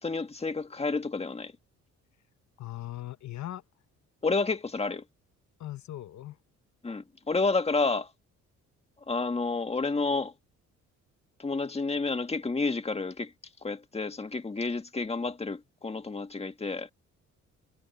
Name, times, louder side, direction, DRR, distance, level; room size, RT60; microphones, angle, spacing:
voice 1, 0.0-1.5 4.2-5.0 6.8-8.1 9.1-10.3 11.4-13.3 13.6-16.9, left 3 dB, 20° left, 1.8 m, -30 dB
voice 2, 2.6-3.6 5.6-6.4, left 14 dB, 70° left, 1.2 m, -39 dB
cardioid pair, 90°, 30 cm